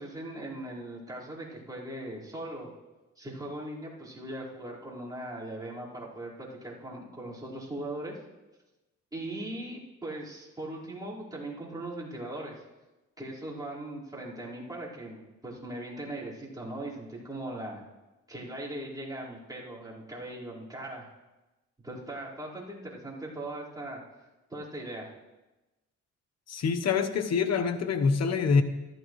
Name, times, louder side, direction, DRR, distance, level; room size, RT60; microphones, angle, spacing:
voice 1, 0.0-2.7 3.2-8.2 9.1-12.5 13.2-17.8 18.3-21.1 21.8-24.0 24.5-25.1, right 1 dB, 10° right, -7 dB, 4.6 m, -39 dB
voice 2, 26.5-28.6, left 5 dB, 60° left, 8 dB, 1.1 m, -25 dB
14.0 x 13.0 x 3.2 m, 1.1 s
cardioid pair, 90°, 30 cm